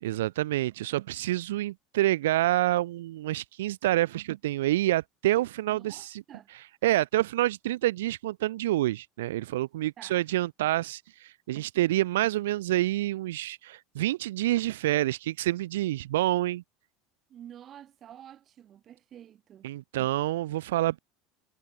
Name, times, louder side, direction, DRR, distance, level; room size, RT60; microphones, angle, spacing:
voice 1, 0.0-6.2 6.5-16.6 19.6-21.0, right 15 dB, 85° right, 2.5 m, -27 dB
voice 2, 5.7-6.5 10.0-10.2 17.3-19.7, right 10 dB, 40° right, 4.6 m, -49 dB
supercardioid pair, 105°, 0 cm